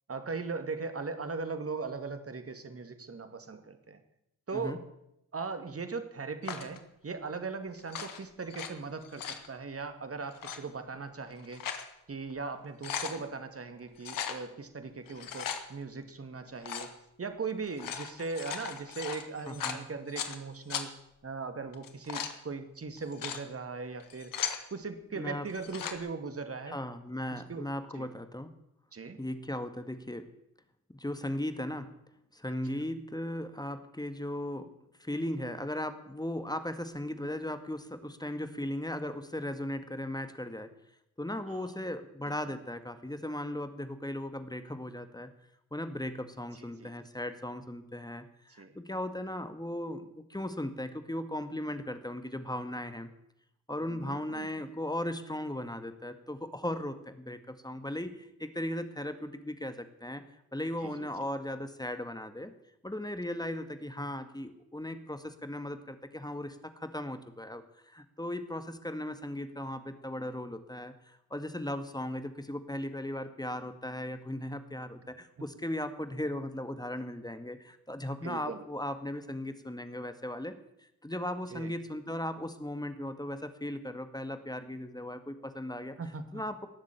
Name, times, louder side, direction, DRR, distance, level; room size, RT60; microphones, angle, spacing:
voice 1, 0.1-4.0 4.5-4.8 5.3-11.7 12.1-16.9 17.2-20.9 21.2-24.3 24.7-26.8 27.3-27.7 27.9-28.1 28.9-29.2 41.5-41.8 42.3-42.4 46.5-46.9 48.6-48.8 53.9-54.5 60.8-61.3 63.3-63.4 75.4-75.5 78.2-78.6 81.5-81.7 86.0-86.4, right 4 dB, 45° right, 8 dB, 2.3 m, -39 dB
sound 1, 6.4-6.8 7.8-8.7 9.0-9.5 10.3-10.6 11.3-11.9 12.3-12.4 12.6-13.2 14.0-14.4 15.1-15.6 16.6-16.9 17.6-20.4 20.7-20.8 21.7-22.3 23.0-23.4 24.0-24.6 25.5-26.0, left 8 dB, 75° left, 1.7 m, -37 dB
voice 2, 19.5-19.8 25.1-25.5 26.7-28.5 29.2-30.3 30.9-31.9 32.3-34.7 35.0-40.7 41.2-45.3 45.7-53.1 53.7-60.2 60.5-62.5 62.8-80.6 81.0-86.0 86.3-86.7, left 1 dB, 10° left, 9 dB, 2.0 m, -37 dB
18.5 x 7.5 x 9.1 m, 0.81 s
supercardioid pair, 40°, 33 cm